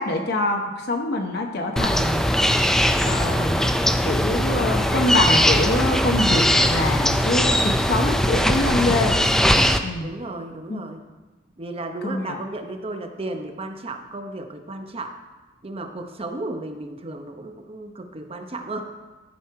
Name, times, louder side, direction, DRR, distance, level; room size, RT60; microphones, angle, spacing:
voice 1, 0.0-2.2 3.0-3.8 4.0-9.1 9.8-10.1 10.7-10.8 12.0-12.4, left 2 dB, 60° left, 3 dB, 0.8 m, -25 dB
sound 1, 1.8-9.8, equal, 5° left, 0.4 m, -20 dB
voice 2, 8.7-9.1 10.0-11.0 11.6-15.1 15.6-18.9, right 2 dB, 30° right, 5 dB, 0.8 m, -34 dB
12.5 x 6.2 x 4.7 m, 1.2 s
head